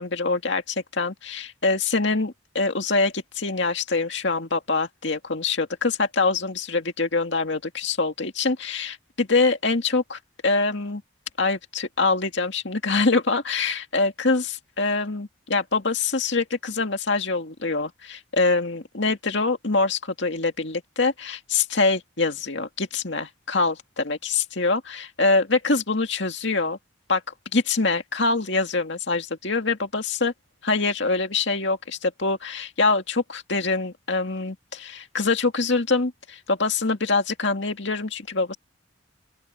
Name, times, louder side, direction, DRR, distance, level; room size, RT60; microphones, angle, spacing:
voice 1, 0.0-11.0 11.4-26.8 27.1-27.2 27.5-30.3 30.6-38.5, left 3 dB, 60° left, 2.2 m, -24 dB
open air
head